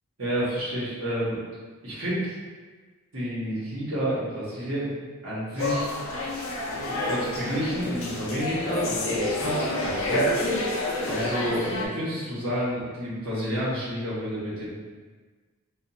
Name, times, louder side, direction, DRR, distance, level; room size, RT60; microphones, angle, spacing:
voice 1, 0.2-1.4 1.8-2.3 3.1-4.9 5.2-5.9 6.9-10.3 11.1-14.7, equal, 80° right, -9 dB, 1.2 m, -30 dB
sound 1, 5.6-11.9, left 1 dB, 70° left, 0.4 m, -28 dB
2.8 x 2.5 x 2.6 m, 1.4 s
head